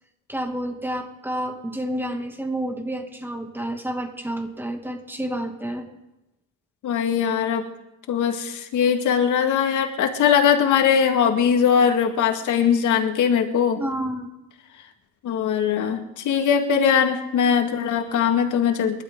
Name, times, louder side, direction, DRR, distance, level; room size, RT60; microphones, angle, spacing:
voice 1, 0.3-5.8 13.8-14.3, right 1 dB, 5° right, 4 dB, 2.3 m, -29 dB
voice 2, 6.8-7.6 8.1-13.8 15.2-19.0, left 7 dB, 80° left, 5 dB, 2.0 m, -20 dB
29.0 x 12.0 x 3.8 m, 0.94 s
cardioid pair, 90°, 30 cm